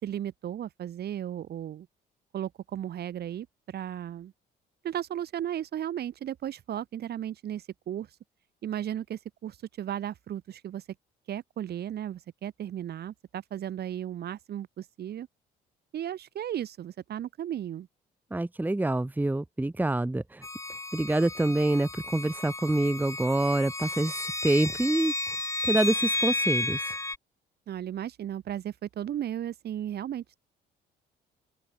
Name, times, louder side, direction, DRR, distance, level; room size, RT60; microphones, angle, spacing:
voice 1, 0.0-1.9 2.3-4.3 4.8-8.1 8.6-10.8 11.3-15.3 15.9-17.9 27.7-30.4, right 10 dB, 60° right, 2.2 m, -35 dB
voice 2, 18.3-20.4 20.9-25.1 25.7-26.8, right 2 dB, 10° right, 1.2 m, -26 dB
sound 1, 20.4-27.2, left 2 dB, 15° left, 2.7 m, -32 dB
open air
supercardioid pair, 75°, 19 cm